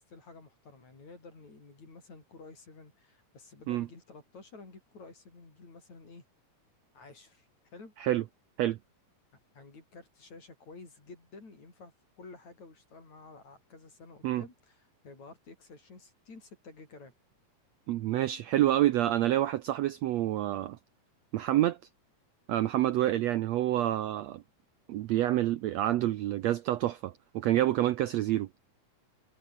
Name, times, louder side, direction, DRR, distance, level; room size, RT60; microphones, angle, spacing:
voice 1, 0.0-6.2 6.9-7.9 9.5-17.1 23.1-23.3, left 3 dB, 55° left, 7.8 m, -51 dB
voice 2, 17.9-20.8 21.3-21.8 22.5-24.4 24.9-28.5, right 13 dB, 70° right, 1.7 m, -28 dB
omnidirectional pair, 3.8 m